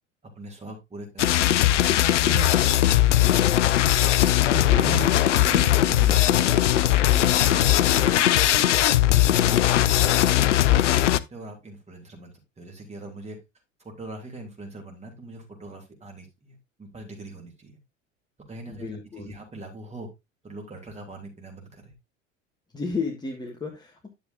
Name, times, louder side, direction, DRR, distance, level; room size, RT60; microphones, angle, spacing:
voice 1, 0.2-1.8 2.3-3.2 4.5-6.6 7.1-8.6 9.1-13.4 13.8-17.7 18.5-18.9 19.2-20.1 20.4-21.9, right 2 dB, 15° right, 2 dB, 3.1 m, -40 dB
sound 1, 1.2-11.2, left 13 dB, 65° left, 0.6 m, -19 dB
voice 2, 18.7-19.3 22.7-24.1, left 4 dB, 10° left, 0 dB, 1.6 m, -32 dB
10.5 x 7.1 x 2.6 m, 0.22 s
figure-of-eight pair, 80°, 39 cm